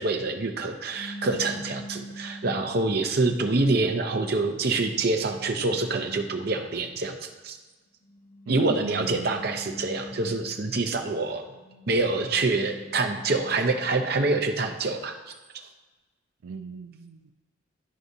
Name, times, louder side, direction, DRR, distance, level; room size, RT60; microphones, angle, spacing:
voice 1, 0.0-7.6 8.5-11.4 11.9-15.2, right 3 dB, 50° right, 4 dB, 0.7 m, -26 dB
sound 1, 0.9-3.1 3.8-6.9 8.0-11.0 11.4-14.4, equal, 40° left, 1.0 m, -44 dB
voice 2, 8.5-9.4 16.4-17.3, right 4 dB, 85° right, 6 dB, 0.4 m, -37 dB
11.5 x 4.8 x 2.7 m, 1.2 s
head